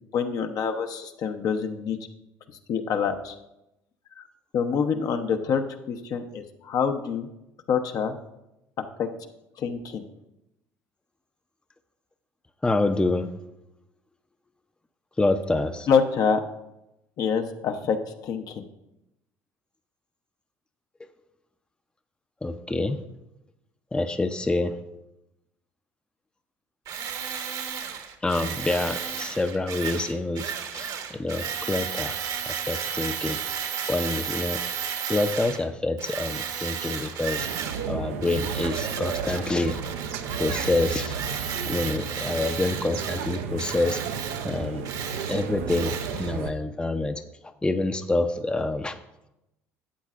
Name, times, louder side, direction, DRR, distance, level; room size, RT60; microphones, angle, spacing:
voice 1, 0.1-2.0 2.7-3.3 4.2-4.3 4.5-7.3 7.7-8.2 9.0-9.1 9.6-10.0 15.9-16.4 17.2-18.0 18.2-18.7, left 6 dB, 55° left, 6 dB, 0.8 m, -26 dB
voice 2, 12.6-13.3 15.2-15.9 22.4-23.0 23.9-24.8 28.2-33.4 33.9-34.6 35.1-37.5 37.9-39.9 40.4-41.3 41.7-44.0 44.4-44.9 45.3-49.0, left 2 dB, 10° left, 8 dB, 0.6 m, -27 dB
Tools, 26.9-35.6 36.0-37.9 38.2-46.3, right 8 dB, 60° right, 1.1 m, -33 dB
sound 1, 37.4-46.5, right 6 dB, 80° right, 0.6 m, -33 dB
12.5 x 8.0 x 2.5 m, 0.91 s
hypercardioid pair, 65°, 7 cm